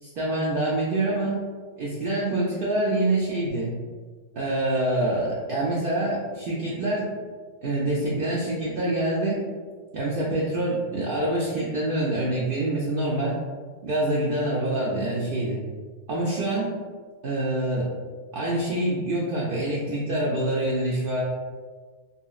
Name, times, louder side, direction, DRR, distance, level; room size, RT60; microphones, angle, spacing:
voice 1, 0.0-1.4 1.8-3.7 4.3-7.1 7.6-9.4 9.9-13.4 13.8-15.6 16.1-16.8 17.2-17.9 18.3-21.2, right 1 dB, 60° right, -6 dB, 0.6 m, -26 dB
3.0 x 2.9 x 2.3 m, 1.5 s
omnidirectional pair, 1.2 m